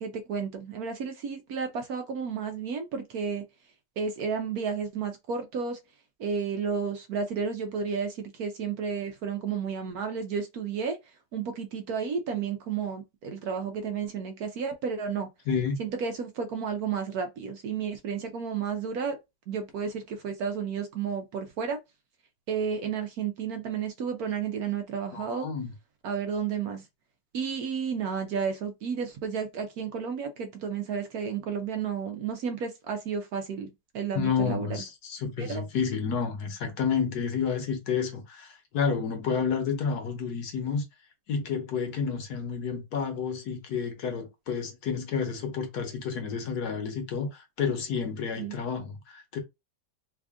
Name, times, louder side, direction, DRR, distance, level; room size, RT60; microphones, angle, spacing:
voice 1, 0.0-3.4 4.0-5.8 6.2-11.0 11.3-15.3 15.8-19.2 19.5-21.8 22.5-25.5 26.0-26.8 27.3-34.8 35.4-35.6 48.4-48.5, right 6 dB, 65° right, 1.0 m, -32 dB
voice 2, 25.1-25.7 34.1-40.8 41.3-49.4, left 6 dB, 65° left, 1.3 m, -30 dB
3.3 x 2.4 x 3.5 m
omnidirectional pair, 1.9 m